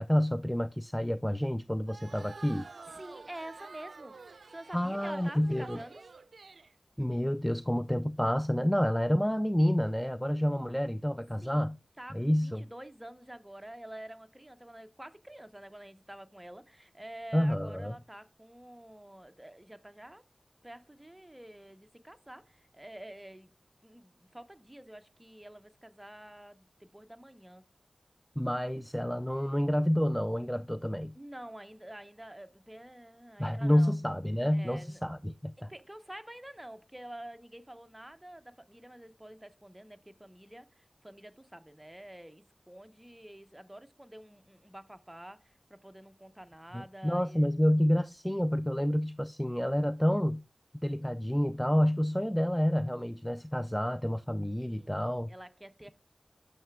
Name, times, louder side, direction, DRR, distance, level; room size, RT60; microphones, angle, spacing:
voice 1, 0.0-2.7 4.7-5.8 7.0-11.8 12.1-12.6 17.3-18.0 28.4-31.1 33.4-35.7 46.7-50.4 50.8-55.3, equal, 5° left, 0.3 m, -29 dB
sound 1, 1.9-6.7, right 4 dB, 90° right, 0.3 m, -49 dB
voice 2, 2.9-6.0 11.4-11.7 12.0-20.2 20.6-23.5 23.8-27.6 31.1-33.9 34.5-35.0 35.6-47.5 54.7-55.0 55.3-55.9, right 1 dB, 15° right, 0.8 m, -48 dB
9.0 x 6.7 x 2.3 m
wide cardioid pair, 80°, 0 cm